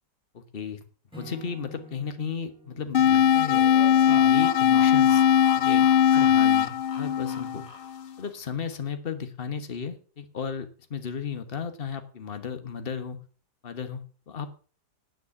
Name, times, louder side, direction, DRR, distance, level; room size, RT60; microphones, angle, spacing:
voice 1, 0.3-0.8 1.2-3.6 4.1-5.2 5.5-7.6 8.2-13.2 13.6-14.5, left 6 dB, 35° left, 9 dB, 1.4 m, -35 dB
Acoustic guitar / Strum, 1.1-4.4, right 1 dB, 5° right, 6.3 m, -49 dB
sound 1, 2.9-8.0, left 9 dB, 80° left, 0.5 m, -20 dB
sound 2, 3.1-8.2, left 3 dB, 55° left, 2.5 m, -42 dB
9.4 x 9.3 x 7.0 m, 0.40 s
omnidirectional pair, 1.8 m